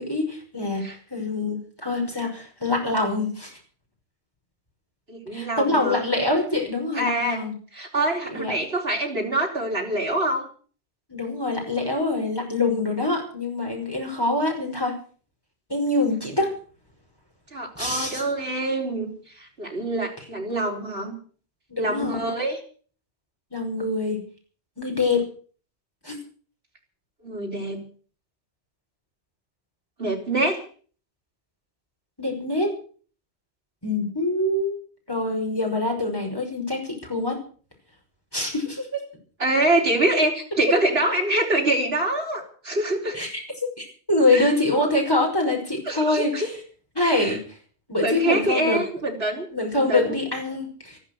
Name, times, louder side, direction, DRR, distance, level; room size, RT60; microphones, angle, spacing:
voice 1, 0.0-0.8 1.1-3.5 5.3-7.5 8.3-8.5 11.1-14.9 15.7-16.5 17.7-18.2 21.7-22.4 23.5-24.2 24.8-25.3 26.0-26.2 32.2-32.7 33.8-34.8 35.1-37.4 38.3-39.0 43.1-43.3 43.8-46.5 47.0-47.4 47.9-48.8 49.5-51.0, left 2 dB, 20° left, 0 dB, 5.8 m, -25 dB
voice 2, 5.1-6.1 6.9-10.5 17.5-21.2 21.8-22.6 27.2-27.8 30.0-30.6 39.4-43.2 44.3-44.5 45.9-46.5 47.0-47.4 48.0-49.5 49.7-50.1, right 1 dB, 65° right, 0 dB, 4.6 m, -25 dB
13.5 x 12.5 x 8.1 m, 0.43 s
omnidirectional pair, 1.1 m